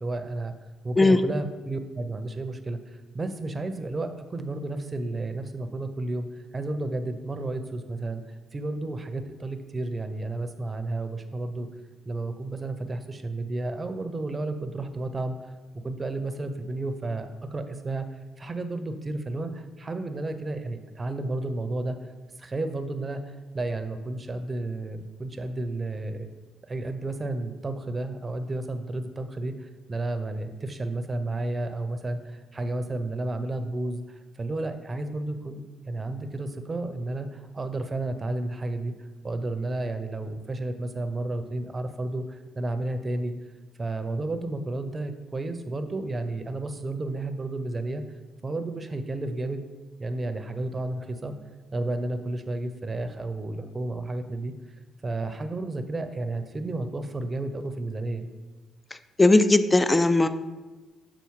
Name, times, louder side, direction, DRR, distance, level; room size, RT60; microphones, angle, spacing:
voice 1, 0.0-0.5 0.8-6.3 6.5-8.2 8.5-11.7 12.1-15.3 15.8-18.1 18.4-22.0 22.4-26.3 26.6-38.9 39.2-43.3 43.8-48.0 48.4-49.6 50.0-51.3 51.7-54.5 55.0-58.3, right 2 dB, 30° right, 8 dB, 0.6 m, -32 dB
voice 2, 59.2-60.3, left 2 dB, 15° left, 12 dB, 0.4 m, -18 dB
6.9 x 3.9 x 4.7 m, 1.2 s
cardioid pair, 90°, 0 cm